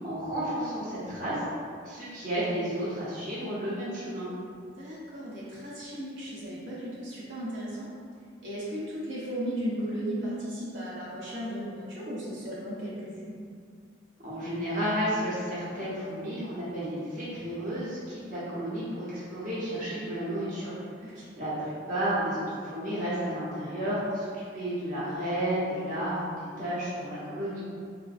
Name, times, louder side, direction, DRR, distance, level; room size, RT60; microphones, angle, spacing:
voice 1, 0.0-1.4 1.8-4.3 14.2-20.7 21.4-27.6, right 1 dB, 45° right, -10 dB, 0.8 m, -32 dB
voice 2, 4.5-7.9 8.4-13.4 21.0-21.3, equal, 75° right, -8 dB, 0.8 m, -36 dB
3.7 x 2.1 x 2.5 m, 2.2 s
head